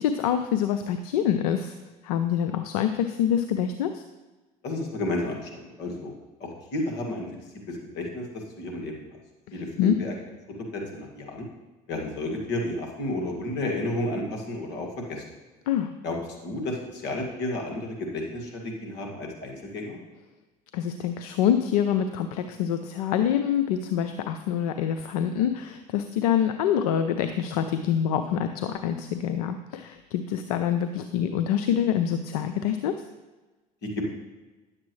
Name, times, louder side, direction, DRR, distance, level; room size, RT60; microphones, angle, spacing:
voice 1, 0.0-1.7 2.0-4.0 9.5-10.0 15.7-15.9 20.7-33.0, left 9 dB, 85° left, 9 dB, 0.5 m, -26 dB
voice 2, 4.6-6.1 6.4-7.3 7.7-8.3 8.6-8.9 9.5-10.1 10.7-11.5 11.9-15.2 16.0-16.2 16.4-20.0 33.8-34.1, left 1 dB, 65° left, 1 dB, 2.0 m, -31 dB
10.0 x 7.4 x 3.2 m, 1.2 s
hypercardioid pair, 75°, 19 cm